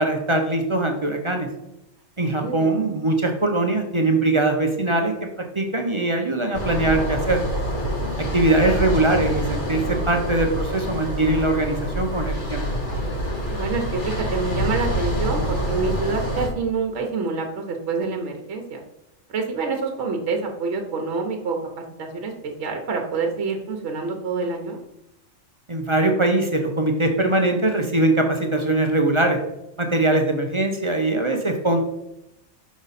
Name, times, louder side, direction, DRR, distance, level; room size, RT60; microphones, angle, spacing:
voice 1, 0.0-1.5 2.2-5.1 5.5-7.4 8.2-12.6 25.7-29.4 29.8-31.8, right 2 dB, 35° right, 3 dB, 0.6 m, -21 dB
voice 2, 2.2-2.7 13.5-18.8 19.3-24.8, right 4 dB, 65° right, 3 dB, 1.1 m, -27 dB
sound 1, 6.5-16.5, equal, 40° left, 1.5 m, -26 dB
6.0 x 5.1 x 4.1 m, 0.87 s
omnidirectional pair, 1.3 m